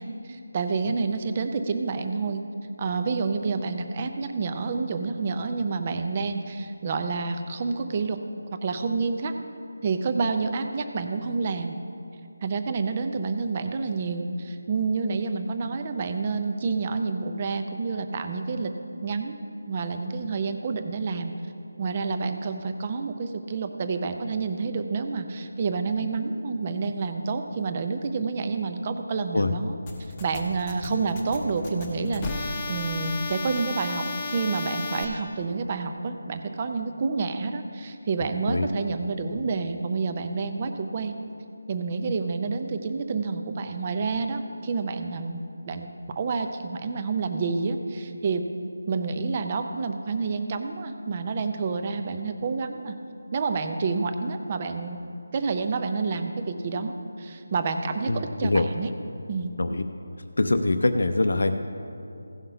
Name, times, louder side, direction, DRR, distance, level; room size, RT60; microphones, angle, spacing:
voice 1, 0.0-2.4 2.8-8.2 8.5-9.3 9.8-11.7 12.4-18.7 19.0-19.4 19.7-21.3 21.8-29.8 30.2-41.2 41.7-45.9 46.2-48.4 48.9-53.0 53.3-55.0 55.3-58.9 59.3-59.6, right 4 dB, 20° right, 7 dB, 0.5 m, -29 dB
sound 1, 29.9-35.0, left 3 dB, 15° left, 0.9 m, -33 dB
voice 2, 58.1-58.7 59.6-59.8 60.4-61.6, left 2 dB, 70° left, 7 dB, 0.6 m, -23 dB
16.0 x 5.8 x 5.6 m, 2.7 s
figure-of-eight pair, 175°, 0 cm